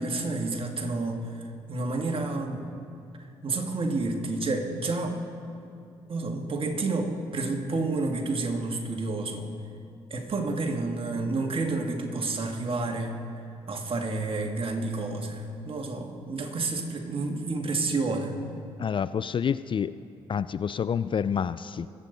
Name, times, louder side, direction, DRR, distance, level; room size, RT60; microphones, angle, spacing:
voice 1, 0.0-1.4 1.7-2.7 3.4-5.2 6.1-9.5 10.1-13.2 13.7-18.4, right 3 dB, 45° right, 3 dB, 1.8 m, -30 dB
voice 2, 18.8-19.9 20.3-21.9, left 7 dB, 40° left, 15 dB, 0.4 m, -28 dB
21.0 x 8.2 x 4.0 m, 2.5 s
hypercardioid pair, 50°, 13 cm